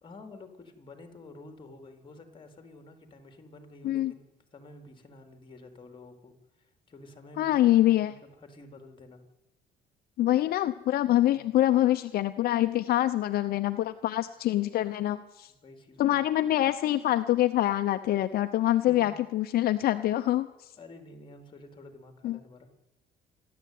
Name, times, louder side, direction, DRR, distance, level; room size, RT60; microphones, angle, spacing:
voice 1, 0.0-9.2 11.3-11.5 15.5-16.7 18.9-19.1 20.8-22.7, left 2 dB, 30° left, 6 dB, 4.0 m, -50 dB
voice 2, 7.4-8.1 10.2-15.5 16.0-20.7 22.2-22.4, left 14 dB, 65° left, 9 dB, 0.9 m, -25 dB
27.5 x 12.0 x 9.5 m, 0.99 s
cardioid pair, 110°, 17 cm